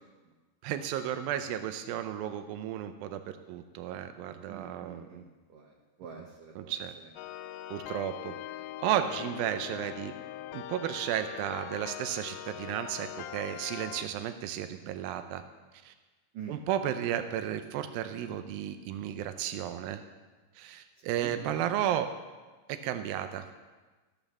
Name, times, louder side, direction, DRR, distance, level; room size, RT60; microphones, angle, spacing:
voice 1, 0.6-5.2 6.6-6.9 7.7-8.3 8.8-10.1 10.5-15.4 15.8-15.9 16.5-20.0 20.6-22.1 22.7-23.5, right 10 dB, 90° right, 9 dB, 2.0 m, -33 dB
voice 2, 4.5-5.7 6.0-6.7 16.3-16.6 21.0-21.3, right 7 dB, 65° right, -1 dB, 2.3 m, -46 dB
sound 1, 7.2-14.1, left 13 dB, 90° left, 2.8 m, -42 dB
14.0 x 8.8 x 7.2 m, 1.3 s
omnidirectional pair, 5.0 m